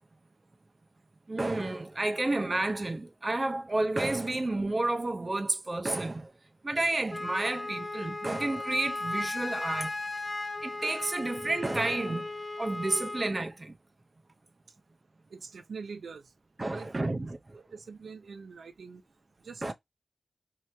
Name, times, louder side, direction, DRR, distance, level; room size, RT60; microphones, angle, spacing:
voice 1, 1.3-6.3 6.6-9.9 10.6-12.3 12.6-13.7 16.6-17.4 19.6-19.7, right 2 dB, 35° right, 0.6 m, -30 dB
Wind instrument woodwind instrument, 7.1-13.4, left 2 dB, 20° left, 0.4 m, -36 dB
voice 2, 15.3-16.3 16.7-17.3 17.5-19.0 19.4-19.7, right 5 dB, 85° right, 0.4 m, -44 dB
3.1 x 2.7 x 3.2 m
wide cardioid pair, 80°, 0 cm